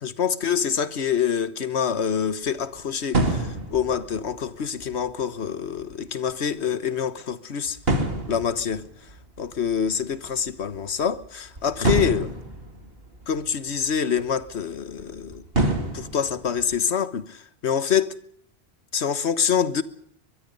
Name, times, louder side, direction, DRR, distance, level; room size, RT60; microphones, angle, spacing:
voice 1, 0.0-7.8 8.3-8.9 9.4-12.3 13.3-15.4 15.9-18.1 18.9-19.8, left 7 dB, 80° left, 1.4 m, -26 dB
sound 1, 2.5-2.8 3.1-5.2 5.6-5.9 6.3-6.4 6.6-6.7 7.7-10.8 11.0-13.9 14.2-14.5 15.0-16.8, right 1 dB, 65° right, 3.2 m, -28 dB
23.0 x 22.0 x 5.4 m
omnidirectional pair, 1.1 m